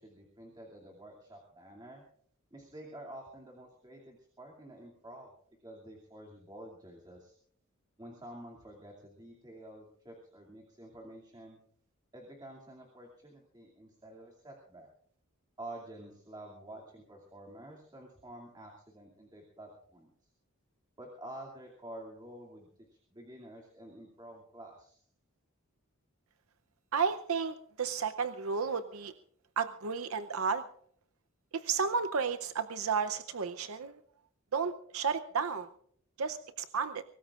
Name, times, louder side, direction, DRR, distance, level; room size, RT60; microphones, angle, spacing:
voice 1, 0.0-2.0 2.5-5.3 5.6-7.4 8.0-11.6 12.1-14.9 15.6-20.3 21.0-22.7 23.1-25.0, right 1 dB, 20° right, -1 dB, 2.6 m, -49 dB
voice 2, 26.9-29.1 29.6-30.6 31.5-34.0 34.5-35.7 36.2-37.0, right 5 dB, 75° right, 11 dB, 0.7 m, -32 dB
24.0 x 19.0 x 2.5 m, 0.64 s
head